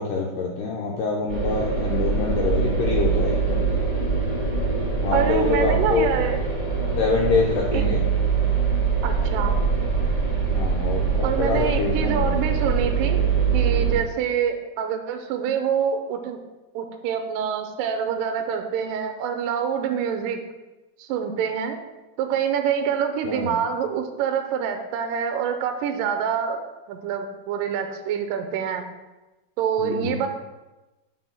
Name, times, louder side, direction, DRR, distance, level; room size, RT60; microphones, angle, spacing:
voice 1, 0.0-3.6 5.0-6.1 7.0-8.0 10.5-12.3 23.2-23.5 29.8-30.2, left 4 dB, 85° left, -2 dB, 1.9 m, -25 dB
sound 1, 1.3-13.9, right 5 dB, 35° right, 0.7 m, -23 dB
voice 2, 5.1-6.4 7.7-7.9 9.0-9.6 11.2-13.2 13.5-16.4 16.7-20.4 21.0-21.8 22.2-26.6 26.9-28.9 29.6-30.3, right 8 dB, 80° right, 5 dB, 2.0 m, -26 dB
6.1 x 4.5 x 5.7 m, 1.1 s
omnidirectional pair, 4.6 m